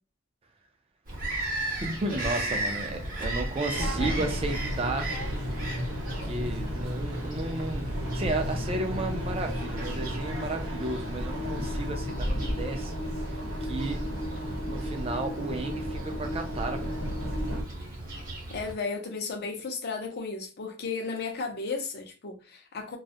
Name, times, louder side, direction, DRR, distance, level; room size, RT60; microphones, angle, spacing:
Bird vocalization bird call bird song, 1.0-18.7, right 1 dB, 45° right, 0.8 m, -36 dB
voice 1, 1.8-5.1 6.2-14.1 14.7-16.9, right 2 dB, 30° right, 0.4 m, -33 dB
sound 1, 3.7-17.6, equal, 90° right, 0.8 m, -33 dB
voice 2, 18.5-23.0, left 4 dB, 55° left, 0.6 m, -34 dB
2.3 x 2.0 x 2.6 m
head